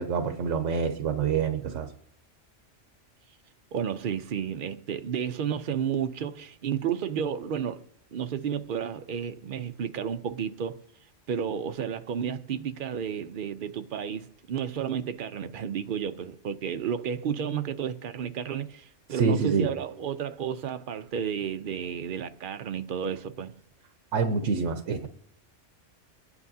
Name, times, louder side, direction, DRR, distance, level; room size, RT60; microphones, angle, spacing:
voice 1, 0.0-1.9 19.1-19.7 24.1-25.1, right 5 dB, 80° right, 1.1 m, -26 dB
voice 2, 3.7-7.8 8.1-10.8 11.3-23.6, right 8 dB, 55° right, 0.7 m, -32 dB
24.5 x 9.6 x 2.7 m
omnidirectional pair, 1.3 m